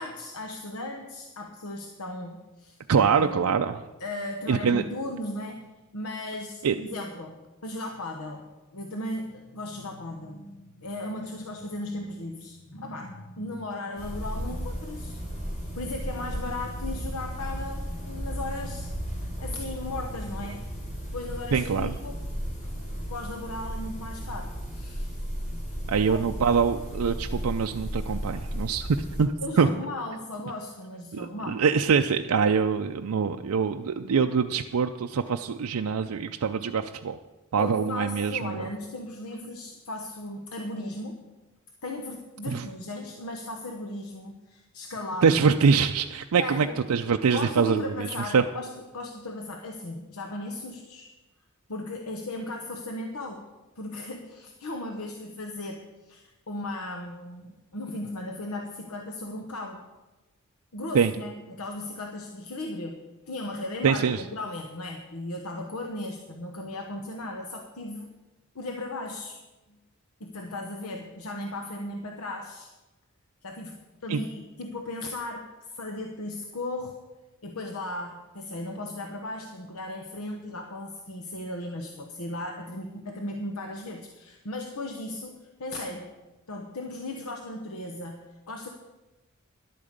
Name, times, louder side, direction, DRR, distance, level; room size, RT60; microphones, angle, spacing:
voice 1, 0.0-3.5 4.0-5.7 5.9-8.5 8.7-15.2 15.7-18.9 19.4-20.7 21.1-22.2 22.6-25.1 26.1-26.2 29.4-31.6 37.6-41.2 41.8-45.4 46.4-46.8 47.3-51.1 51.7-53.5 53.8-59.8 60.7-68.1 68.5-69.4 70.2-72.7 73.4-77.0 77.4-86.1 86.5-88.7, left 2 dB, 90° left, 3 dB, 1.0 m, -36 dB
voice 2, 2.9-3.9 4.5-4.8 6.6-6.7 21.5-21.9 25.9-28.9 29.2-29.7 31.1-37.2 37.5-38.7 42.5-42.7 45.2-48.4 60.9-61.1 63.8-64.2 74.1-74.2, right 6 dB, 85° right, 5 dB, 0.5 m, -24 dB
sound 1, 14.0-29.2, equal, 35° left, 4.0 m, -34 dB
11.0 x 8.6 x 6.6 m, 1.1 s
head